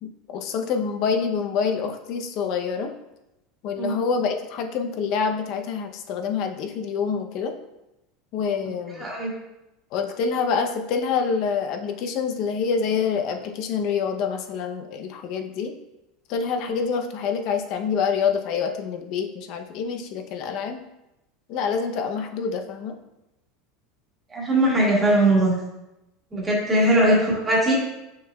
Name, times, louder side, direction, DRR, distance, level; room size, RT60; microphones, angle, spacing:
voice 1, 0.0-2.9 3.6-7.5 8.3-9.1 9.9-15.7 16.3-20.8 21.5-22.9 26.8-27.0, left 6 dB, 45° left, 5 dB, 0.7 m, -26 dB
voice 2, 8.9-9.3 24.3-25.5 26.3-27.7, right 1 dB, 15° right, -4 dB, 1.9 m, -20 dB
7.7 x 6.4 x 2.3 m, 0.94 s
supercardioid pair, 165°, 0 cm